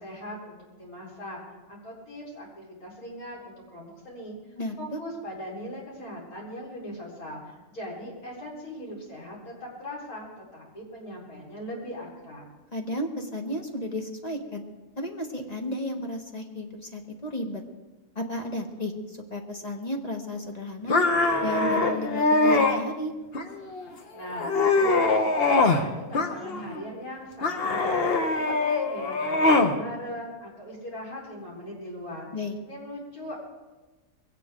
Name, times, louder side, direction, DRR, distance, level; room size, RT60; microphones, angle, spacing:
voice 1, 0.0-1.4 1.7-4.3 4.8-12.4 24.1-32.3 32.6-33.4, equal, 75° left, -4 dB, 5.0 m, -40 dB
voice 2, 12.7-14.6 15.0-17.6 18.1-18.9 19.3-21.1 21.4-23.1 32.3-32.6, left 1 dB, 30° left, 3 dB, 1.5 m, -33 dB
sound 1, 20.9-22.8 23.3-23.9 24.3-25.9 26.1-26.8 27.4-29.8, left 3 dB, 45° left, 1.2 m, -23 dB
21.5 x 17.0 x 3.8 m, 1.2 s
omnidirectional pair, 1.6 m